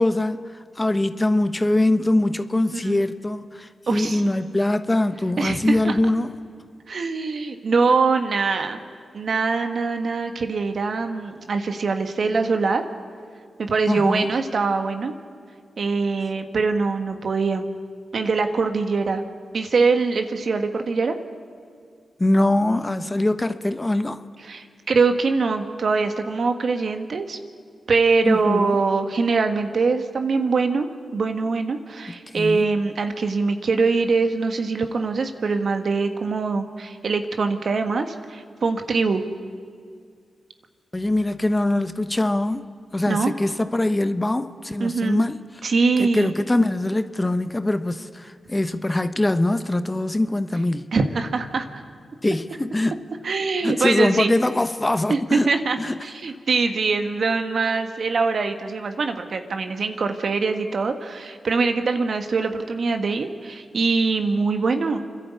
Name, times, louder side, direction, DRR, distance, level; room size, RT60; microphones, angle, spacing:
voice 1, 0.0-6.3 13.9-14.3 22.2-24.2 28.3-28.8 32.1-32.6 40.9-42.7 42.9-45.4 46.0-50.9 52.2-53.0 53.6-55.5 55.8-56.0, left 1 dB, 25° left, 10 dB, 1.1 m, -23 dB
voice 2, 3.9-4.2 5.4-6.0 6.9-8.8 9.1-12.8 13.6-15.1 15.8-17.7 18.1-19.2 19.5-21.1 24.5-27.4 27.9-39.2 43.1-43.3 44.8-45.2 45.6-46.3 50.9-51.7 53.2-54.3 55.1-65.0, right 4 dB, 65° right, 6 dB, 1.5 m, -23 dB
29.0 x 11.0 x 8.4 m, 2.2 s
supercardioid pair, 40°, 0 cm